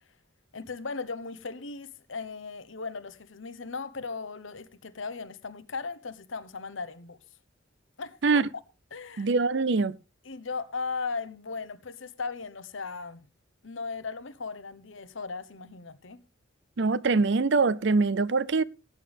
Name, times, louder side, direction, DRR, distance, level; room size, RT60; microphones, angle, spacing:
voice 1, 0.5-7.2 8.0-8.2 8.9-9.3 10.2-13.3 13.6-16.2, left 4 dB, 80° left, 1.1 m, -37 dB
voice 2, 9.2-10.0 16.8-18.6, right 4 dB, 60° right, 0.6 m, -23 dB
17.5 x 9.2 x 3.5 m
head